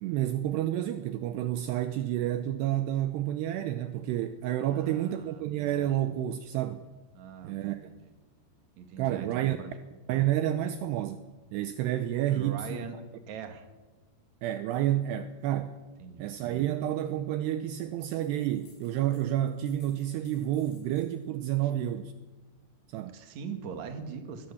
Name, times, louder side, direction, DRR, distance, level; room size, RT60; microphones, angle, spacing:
voice 1, 0.0-6.8 7.4-7.9 9.0-9.6 10.1-12.8 14.4-15.8 16.2-22.1 22.9-23.2, right 12 dB, 80° right, 10 dB, 2.8 m, -30 dB
voice 2, 4.7-5.7 7.1-8.1 8.8-9.8 12.3-13.0 13.3-13.7 16.0-16.3 23.1-24.5, right 6 dB, 50° right, 6 dB, 2.8 m, -42 dB
sound 1, 17.9-19.3 19.5-21.2, left 4 dB, 80° left, 7.8 m, -62 dB
22.0 x 18.0 x 7.0 m, 1.2 s
omnidirectional pair, 5.1 m